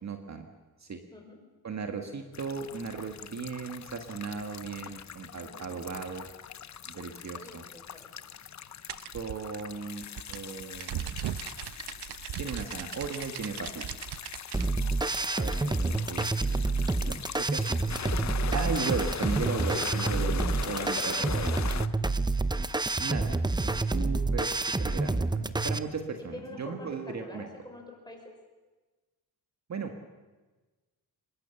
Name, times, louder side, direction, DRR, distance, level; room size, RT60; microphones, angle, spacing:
voice 1, 0.0-0.5 0.8-1.0 1.6-6.3 6.8-7.7 9.1-10.0 10.3-11.2 12.4-13.8 15.3-17.7 18.5-21.6 23.0-24.5 24.8-27.5 29.7-29.9, right 5 dB, 40° right, 5 dB, 1.8 m, -36 dB
sound 1, 2.3-21.9, left 8 dB, 45° left, 0.8 m, -41 dB
voice 2, 5.4-5.8 6.9-8.1 14.6-15.0 15.9-16.2 21.1-22.3 24.1-24.2 26.3-28.4, left 2 dB, 10° left, 2 dB, 5.7 m, -47 dB
sound 2, 8.9-14.7, right 11 dB, 75° right, 1.0 m, -38 dB
sound 3, 14.5-25.8, right 3 dB, 10° right, 0.7 m, -28 dB
25.0 x 22.0 x 7.1 m, 1.2 s
cardioid pair, 125°, 40 cm